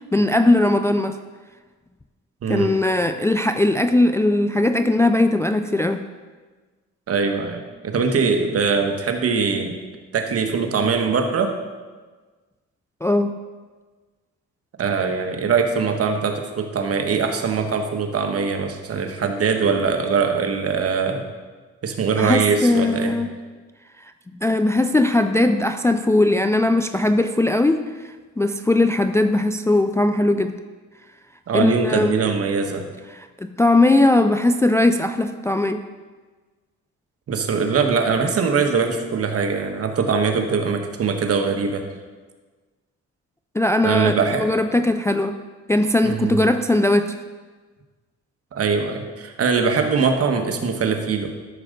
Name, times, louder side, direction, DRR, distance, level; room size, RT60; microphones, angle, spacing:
voice 1, 0.1-1.2 2.5-6.0 13.0-13.4 22.2-23.3 24.4-27.9 28.4-30.5 31.5-32.1 33.4-35.8 43.5-45.4 45.7-47.2, left 2 dB, 10° left, 8 dB, 0.3 m, -19 dB
voice 2, 2.4-2.7 7.1-9.8 10.1-11.5 14.8-21.2 21.8-23.2 31.5-32.9 37.3-41.8 43.8-44.5 46.0-46.4 48.5-51.3, right 5 dB, 50° right, 5 dB, 1.2 m, -22 dB
12.5 x 6.3 x 3.8 m, 1.4 s
cardioid pair, 90°, 30 cm